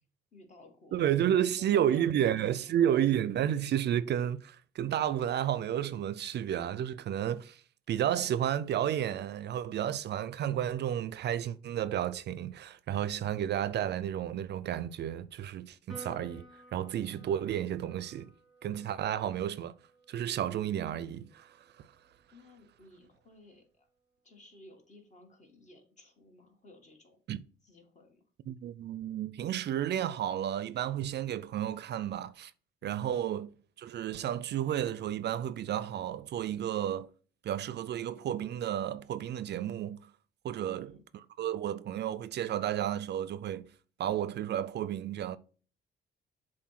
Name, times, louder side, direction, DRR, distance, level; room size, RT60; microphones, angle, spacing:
voice 1, 0.3-1.1 1.5-3.1 22.3-23.9 24.2-27.2 27.6-28.2 40.6-41.0, left 1 dB, 35° left, 1.9 m, -56 dB
voice 2, 0.9-7.6 7.9-18.3 18.6-19.7 20.1-21.9 27.3-27.4 28.5-32.5 32.8-33.5 33.8-37.1 37.4-40.1 40.4-40.9 41.4-43.7 44.0-45.4, right 10 dB, 60° right, 0.4 m, -32 dB
Piano, 15.9-22.6, right 2 dB, ahead, 2.4 m, -54 dB
7.1 x 2.6 x 5.8 m
cardioid pair, 90°, 20 cm